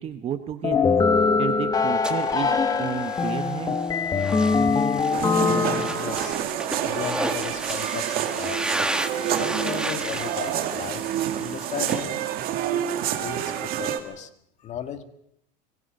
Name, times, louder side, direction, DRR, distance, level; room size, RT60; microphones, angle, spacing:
voice 1, 0.0-3.9, right 9 dB, 30° right, 8 dB, 1.0 m, -32 dB
sound 1, 0.6-6.3, left 4 dB, 15° left, 1.1 m, -23 dB
sound 2, 2.0-12.0, right 1 dB, 5° right, 1.2 m, -33 dB
sound 3, 5.1-14.0, right 11 dB, 45° right, 2.2 m, -28 dB
voice 2, 5.5-6.4 6.8-8.9 9.3-12.2 12.7-14.3 14.6-15.0, left 9 dB, 35° left, 8 dB, 1.8 m, -36 dB
26.0 x 23.0 x 5.4 m, 0.75 s
cardioid pair, 155°, 21 cm